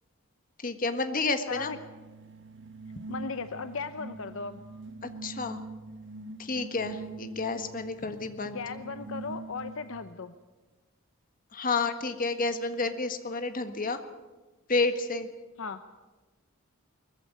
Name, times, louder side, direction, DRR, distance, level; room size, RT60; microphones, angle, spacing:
voice 1, 0.6-1.7 5.0-5.6 6.4-8.6 11.5-14.0 14.7-15.3, left 3 dB, 40° left, 8 dB, 1.6 m, -30 dB
voice 2, 1.5-1.8 3.1-4.6 8.4-10.3 15.6-15.8, left 4 dB, 65° left, 10 dB, 0.8 m, -37 dB
sound 1, 1.5-10.1, right 3 dB, 60° right, 1.1 m, -44 dB
20.5 x 15.0 x 9.4 m, 1.2 s
head